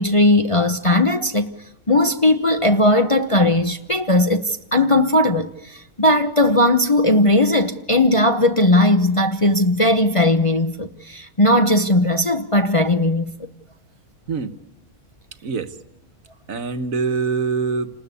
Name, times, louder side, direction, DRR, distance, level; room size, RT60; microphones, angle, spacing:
voice 1, 0.0-1.5 1.9-13.3, left 1 dB, 25° left, 0.8 m, -17 dB
voice 2, 14.3-14.6 15.4-15.8 16.5-17.9, right 5 dB, 65° right, 1.5 m, -24 dB
28.0 x 20.0 x 8.3 m
omnidirectional pair, 1.6 m